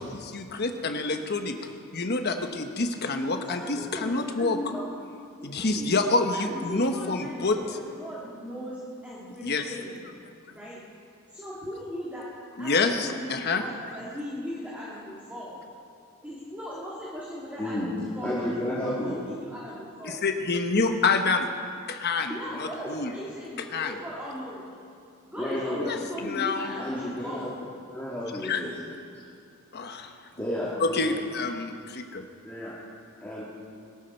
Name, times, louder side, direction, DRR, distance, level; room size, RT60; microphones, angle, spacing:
voice 1, 0.0-1.6 1.9-4.6 5.4-7.6 9.4-9.7 12.6-13.6 20.0-21.5 21.9-23.1 23.7-23.9 25.8-26.7 28.4-28.6 29.7-30.1 30.8-32.2, left 3 dB, 50° left, 6 dB, 1.1 m, -27 dB
voice 2, 3.5-4.8 5.4-6.0 6.3-10.0 10.5-10.8 11.3-12.2 12.6-15.6 16.2-20.2 22.3-24.7 25.3-27.5, equal, 5° right, -8 dB, 2.4 m, -38 dB
voice 3, 18.2-19.2 25.3-25.9 26.8-27.5 27.9-28.8 30.4-30.7 31.0-31.3 32.4-32.7 33.2-33.4, left 1 dB, 10° left, -10 dB, 2.4 m, -31 dB
21.0 x 13.0 x 4.5 m, 2.4 s
head